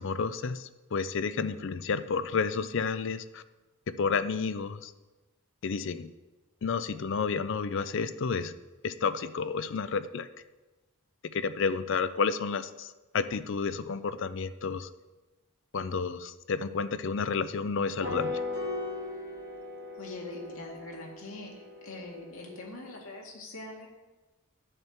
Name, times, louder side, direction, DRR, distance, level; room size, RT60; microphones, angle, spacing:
voice 1, 0.0-3.4 4.0-4.9 5.6-6.1 6.6-8.5 8.8-10.3 11.3-12.9 13.1-14.9 15.7-18.4, left 5 dB, 60° left, 13 dB, 0.5 m, -31 dB
sound 1, 18.0-22.7, left 2 dB, 60° right, 2.8 m, -38 dB
voice 2, 20.0-23.9, left 2 dB, 75° left, -1 dB, 2.1 m, -43 dB
10.5 x 6.7 x 4.4 m, 1.1 s
head